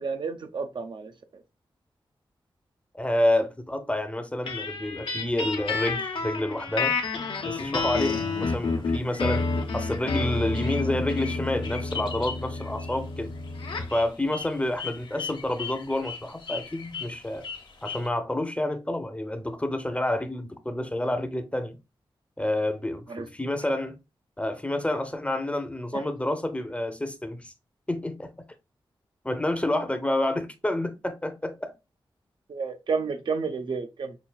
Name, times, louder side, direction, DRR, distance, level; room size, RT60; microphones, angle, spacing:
voice 1, 0.0-1.1 23.1-23.3 32.5-34.2, right 5 dB, 60° right, 0.6 m, -30 dB
voice 2, 2.9-7.0 7.4-9.5 9.7-13.3 13.9-17.5 17.8-21.8 22.4-24.0 24.4-27.5 27.9-28.3 29.2-31.7, left 1 dB, 15° left, 0.6 m, -29 dB
sound 1, 4.5-14.0, left 3 dB, 85° left, 0.8 m, -30 dB
sound 2, 8.0-18.1, left 6 dB, 60° left, 1.0 m, -41 dB
5.7 x 2.3 x 2.3 m
wide cardioid pair, 95°, 9 cm